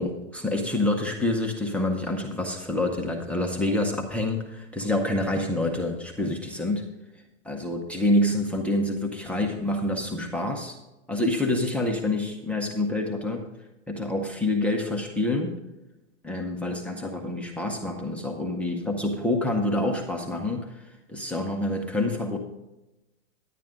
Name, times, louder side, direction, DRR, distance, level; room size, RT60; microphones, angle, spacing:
voice 1, 0.0-6.8 7.4-10.8 11.1-13.5 13.9-15.6 16.2-20.8 21.1-22.4, left 1 dB, 5° left, 0 dB, 0.7 m, -27 dB
10.5 x 9.0 x 3.7 m, 0.99 s
hypercardioid pair, 145°, 37 cm